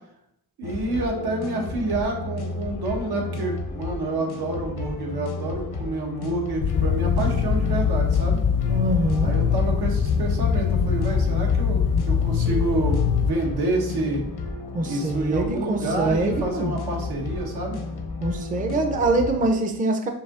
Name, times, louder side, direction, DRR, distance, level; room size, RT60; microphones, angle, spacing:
sound 1, 0.6-19.5, left 3 dB, 85° left, 0.8 m, -33 dB
voice 1, 0.6-8.4 9.2-14.2 14.8-17.8, right 2 dB, 90° right, 0 dB, 1.2 m, -28 dB
sound 2, 6.6-13.3, left 6 dB, 40° left, 0.4 m, -22 dB
voice 2, 8.7-9.3 14.7-16.7 18.2-20.1, right 2 dB, 20° right, 5 dB, 0.4 m, -24 dB
6.6 x 2.8 x 2.4 m, 0.76 s
cardioid pair, 100°, 38 cm